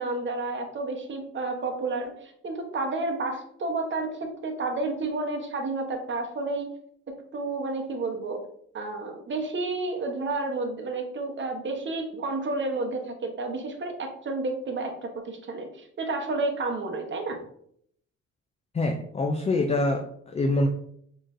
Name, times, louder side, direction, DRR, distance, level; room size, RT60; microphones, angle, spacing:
voice 1, 0.0-6.7 7.1-8.4 8.7-17.4, right 3 dB, 40° right, 3 dB, 0.9 m, -31 dB
voice 2, 18.7-20.7, left 2 dB, 20° left, 4 dB, 0.4 m, -25 dB
4.3 x 3.2 x 2.5 m, 0.66 s
cardioid pair, 90°, 30 cm